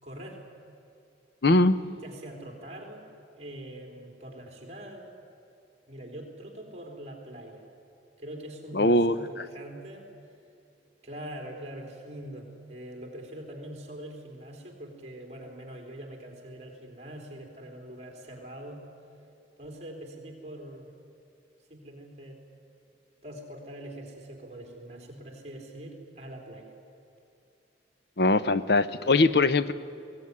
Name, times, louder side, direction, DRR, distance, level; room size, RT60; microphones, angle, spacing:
voice 1, 0.0-0.4 2.0-3.1 3.3-5.2 5.9-7.7 8.2-10.1 11.0-18.8 19.6-20.9 21.7-22.4 23.2-26.7, right 1 dB, 35° right, 2 dB, 3.7 m, -43 dB
voice 2, 1.4-1.8 8.7-9.2 28.2-29.7, left 2 dB, 60° left, 13 dB, 0.8 m, -21 dB
21.5 x 18.0 x 9.7 m, 2.7 s
head